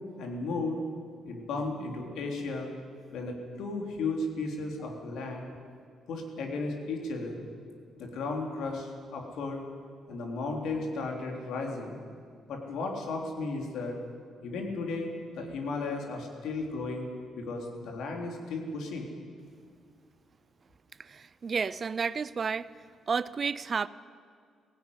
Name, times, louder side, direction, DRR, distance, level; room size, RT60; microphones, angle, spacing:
voice 1, 0.2-0.8 1.2-2.7 3.1-5.4 6.1-7.4 8.0-9.6 10.1-12.0 12.5-13.9 14.4-17.1 17.3-19.1, left 3 dB, 75° left, 1 dB, 3.7 m, -34 dB
voice 2, 21.0-22.7 23.1-23.9, right 5 dB, 40° right, 18 dB, 0.6 m, -31 dB
17.0 x 16.5 x 9.8 m, 2.1 s
cardioid pair, 90°, 0 cm